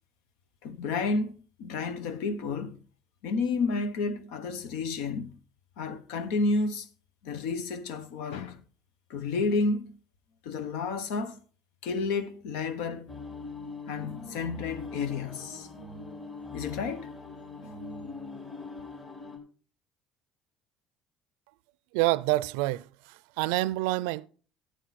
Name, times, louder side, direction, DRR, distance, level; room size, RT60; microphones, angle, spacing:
voice 1, 0.6-2.8 3.2-5.3 5.8-6.9 7.2-8.6 9.1-10.0 10.4-11.4 11.8-13.1 13.9-15.7 16.5-17.1 17.6-17.7, left 4 dB, 85° left, 1.2 m, -31 dB
sound 1, 13.1-19.4, left 3 dB, 25° left, 4.0 m, -42 dB
voice 2, 21.9-22.8 23.4-24.3, right 19 dB, 90° right, 0.4 m, -26 dB
12.5 x 8.0 x 4.2 m
cardioid pair, 105°, 0 cm